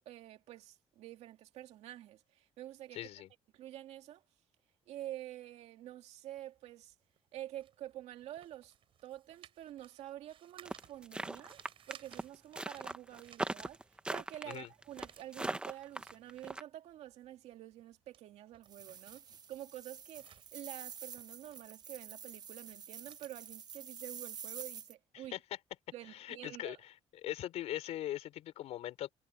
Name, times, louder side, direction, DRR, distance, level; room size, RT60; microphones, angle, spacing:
voice 1, 0.0-3.1 3.5-4.2 4.9-6.9 7.3-8.7 9.0-11.6 11.9-13.8 14.1-25.4 25.9-26.8, right 13 dB, 90° right, 2.2 m, -48 dB
voice 2, 2.9-3.3 14.5-14.7 25.1-25.4 26.1-26.9 27.2-29.1, left 13 dB, 85° left, 4.9 m, -41 dB
sound 1, 6.4-14.1 14.5-24.5, right 10 dB, 55° right, 8.0 m, -62 dB
sound 2, 10.7-16.6, right 2 dB, 10° right, 0.8 m, -39 dB
sound 3, 18.6-24.9, right 7 dB, 40° right, 0.9 m, -48 dB
cardioid pair, 165°, 11 cm